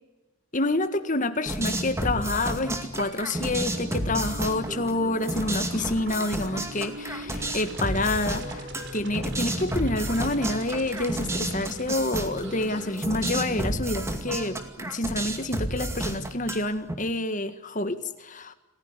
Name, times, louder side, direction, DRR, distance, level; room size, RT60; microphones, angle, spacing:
voice 1, 0.5-18.5, left 2 dB, 35° left, 10 dB, 1.7 m, -28 dB
sound 1, 1.5-16.9, right 1 dB, 15° right, 2.3 m, -31 dB
sound 2, 3.5-12.9, equal, 55° right, 4.0 m, -42 dB
28.0 x 15.5 x 9.8 m, 1.1 s
head